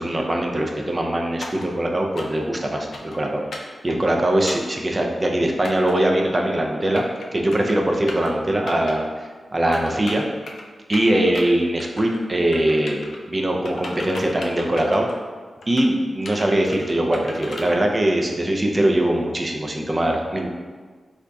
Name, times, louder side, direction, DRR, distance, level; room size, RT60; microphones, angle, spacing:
voice 1, 0.0-7.0 7.3-9.0 9.5-10.2 10.9-13.0 13.3-15.1 15.7-20.5, right 1 dB, 30° right, 1 dB, 0.4 m, -21 dB
sound 1, 1.4-1.7 2.1-2.4 2.9-3.2 3.5-3.7 4.5-4.7 5.6-5.9 6.7-7.2 7.5-7.7 8.1-8.3 8.7-8.9 9.7-10.6 10.9-11.4 11.8-12.3 12.5-13.2 13.6-15.2 15.6-15.9 16.2-17.7, left 2 dB, 80° left, 0.4 m, -36 dB
4.2 x 2.5 x 2.2 m, 1.5 s
wide cardioid pair, 105°, 0 cm